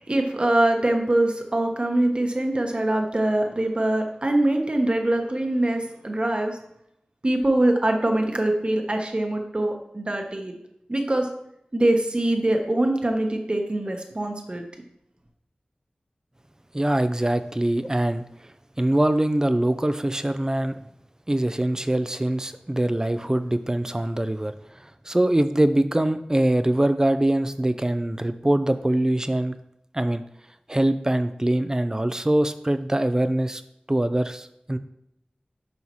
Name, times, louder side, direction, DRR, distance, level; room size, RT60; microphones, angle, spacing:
voice 1, 0.0-6.6 7.2-10.6 10.9-11.3 11.7-14.6, right 1 dB, 40° right, 3 dB, 1.1 m, -23 dB
voice 2, 16.7-18.2 18.8-20.8 21.3-24.5 24.8-29.5 29.9-30.2 30.7-33.6 33.9-34.8, right 1 dB, 20° right, 11 dB, 0.5 m, -23 dB
9.4 x 5.6 x 3.1 m, 0.77 s
wide cardioid pair, 55°, 3 cm